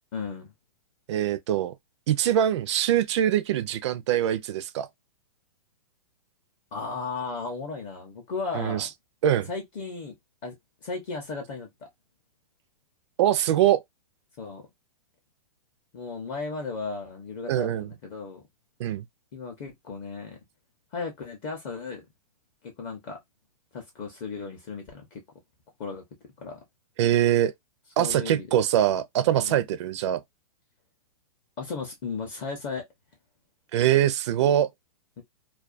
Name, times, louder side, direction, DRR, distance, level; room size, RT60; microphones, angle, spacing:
voice 1, 0.1-0.5 6.7-8.9 9.5-10.2 10.4-10.5 10.8-11.9 14.4-14.6 15.9-18.4 19.3-20.4 20.9-22.1 22.6-23.2 23.7-25.2 25.8-26.0 26.4-26.6 28.0-28.5 29.5-29.6 31.6-32.8 35.2-35.3, left 4 dB, 30° left, 0.6 m, -35 dB
voice 2, 1.1-1.7 2.1-4.9 8.5-8.9 9.2-9.5 13.2-13.8 17.5-17.9 18.8-19.0 27.0-27.5 28.0-30.2 33.7-34.7, right 11 dB, 50° right, 0.4 m, -23 dB
2.3 x 2.2 x 2.4 m
hypercardioid pair, 150°, 19 cm